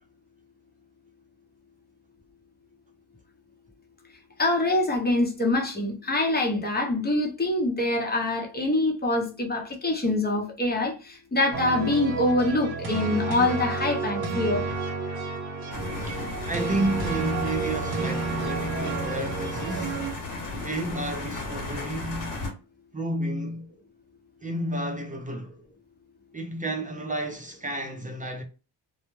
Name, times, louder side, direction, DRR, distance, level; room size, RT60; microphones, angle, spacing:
voice 1, 4.4-14.7, left 2 dB, 25° left, 0.8 m, -25 dB
sound 1, 11.5-20.1, right 3 dB, 65° right, 0.9 m, -31 dB
sound 2, 15.7-22.5, left 2 dB, 50° left, 1.0 m, -35 dB
voice 2, 16.1-20.0 20.4-22.4 22.9-23.7 24.4-25.6 26.3-28.4, right 1 dB, 20° right, 0.4 m, -31 dB
2.1 x 2.1 x 3.1 m
cardioid pair, 95°, 41 cm